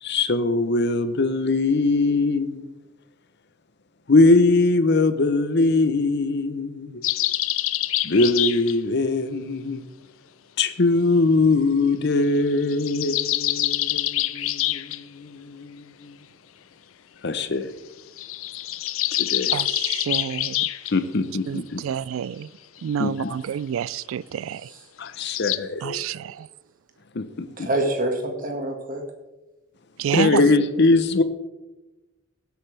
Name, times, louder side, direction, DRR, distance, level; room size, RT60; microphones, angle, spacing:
voice 1, 0.0-2.6 4.1-7.0 8.0-9.9 10.6-16.1 17.2-17.7 19.2-19.5 20.9-21.8 23.0-23.4 25.0-26.0 27.1-27.7 30.1-31.2, left 3 dB, 55° left, 0.8 m, -21 dB
sound 1, 7.0-8.8 12.5-15.0 18.2-20.9 25.1-25.6, left 15 dB, 80° left, 0.5 m, -26 dB
voice 2, 19.5-20.7 21.5-22.5 22.8-24.6 25.8-26.5 30.0-30.4, right 8 dB, 80° right, 0.3 m, -28 dB
voice 3, 27.5-29.0, right 1 dB, 45° right, 1.8 m, -27 dB
17.5 x 8.2 x 3.4 m
head